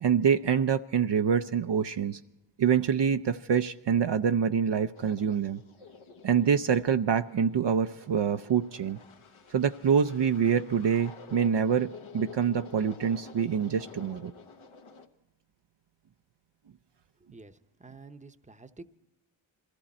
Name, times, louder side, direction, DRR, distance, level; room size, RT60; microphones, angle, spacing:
voice 1, 0.0-2.2 2.6-5.6 6.2-9.0 9.5-14.3, right 7 dB, 60° right, 8 dB, 0.6 m, -26 dB
sound 1, 4.9-15.1, left 5 dB, 75° left, 1.2 m, -50 dB
voice 2, 17.2-18.8, right 3 dB, 15° right, 9 dB, 0.8 m, -49 dB
22.0 x 14.5 x 4.2 m, 0.98 s
cardioid pair, 50°, 49 cm